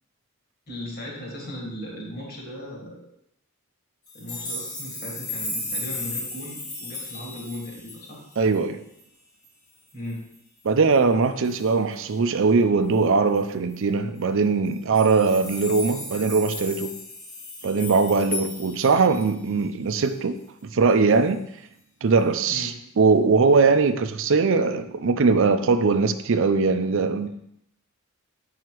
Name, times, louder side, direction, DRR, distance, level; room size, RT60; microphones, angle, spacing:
voice 1, 0.7-3.1 4.1-8.2 9.9-10.3 22.5-22.8, equal, 45° left, 1.9 m, -37 dB
sound 1, 4.1-8.6 9.0-9.1 9.4-9.5 9.9-10.4 11.4-11.7 13.3-13.4 13.7-13.8 14.7-19.5 20.0-20.1, left 2 dB, 75° left, 2.2 m, -35 dB
voice 2, 8.4-8.8 10.6-16.9 17.6-21.4 22.0-27.3, right 4 dB, 60° right, 0.5 m, -21 dB
7.6 x 5.6 x 3.0 m
head